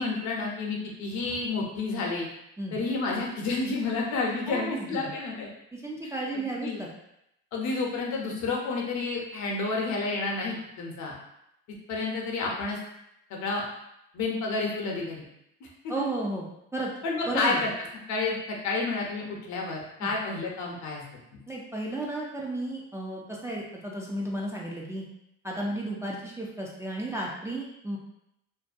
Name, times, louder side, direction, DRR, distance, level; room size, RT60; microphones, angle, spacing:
voice 1, 0.0-2.3 2.7-5.5 6.3-6.8 7.5-11.1 11.7-12.8 13.3-13.6 14.1-15.2 15.8-16.1 17.0-17.7 18.1-21.0, left 3 dB, 70° left, -1 dB, 0.7 m, -30 dB
voice 2, 4.5-5.1 5.7-6.9 15.9-16.5 16.7-16.9 17.3-17.6 20.0-20.1 21.5-25.0 25.4-28.0, right 1 dB, 10° right, -3 dB, 0.4 m, -33 dB
2.6 x 2.1 x 2.5 m, 0.80 s
cardioid pair, 90°, 31 cm